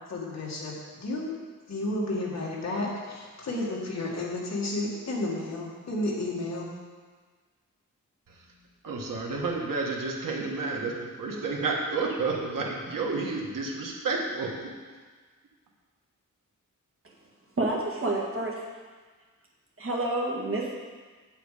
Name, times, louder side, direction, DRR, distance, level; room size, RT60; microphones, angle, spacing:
voice 1, 0.1-1.3 1.7-6.7, left 2 dB, 55° left, -4 dB, 2.0 m, -32 dB
voice 2, 8.8-14.7, right 3 dB, 80° right, -1 dB, 1.6 m, -30 dB
voice 3, 17.6-18.6 19.8-20.8, right 2 dB, 40° right, -2 dB, 1.8 m, -29 dB
7.9 x 7.9 x 5.0 m, 1.4 s
wide cardioid pair, 150°, 32 cm